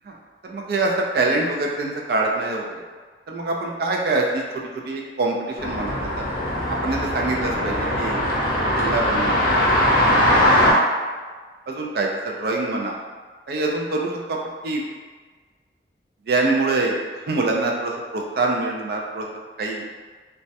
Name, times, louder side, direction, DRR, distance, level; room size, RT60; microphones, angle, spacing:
voice 1, 0.4-2.6 3.3-4.4 4.9-6.3 6.7-8.2 8.8-10.8 11.7-13.0 13.5-14.4 14.6-14.8 16.3-17.0 17.3-19.3 19.6-19.8, right 2 dB, 60° right, 0 dB, 0.4 m, -25 dB
sound 1, 5.6-10.7, equal, 55° left, 0.5 m, -20 dB
2.2 x 2.0 x 2.7 m, 1.4 s
head